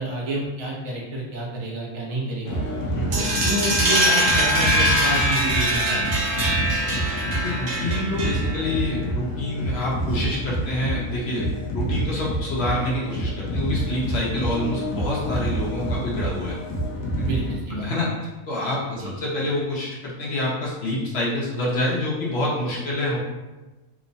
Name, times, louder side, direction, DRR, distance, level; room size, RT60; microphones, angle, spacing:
voice 1, 0.0-2.6 3.1-6.1 6.4-6.5 17.2-17.9 19.0-19.2, right 1 dB, 70° right, -3 dB, 0.9 m, -29 dB
sound 1, 2.4-17.6, right 1 dB, 85° left, 1.0 m, -28 dB
sound 2, 3.1-8.7, equal, 85° right, 1.2 m, -22 dB
voice 2, 7.3-11.5 11.7-16.6 17.2-17.3 17.7-23.2, left 1 dB, 60° left, -5 dB, 0.8 m, -27 dB
3.0 x 2.0 x 2.5 m, 1.1 s
omnidirectional pair, 1.4 m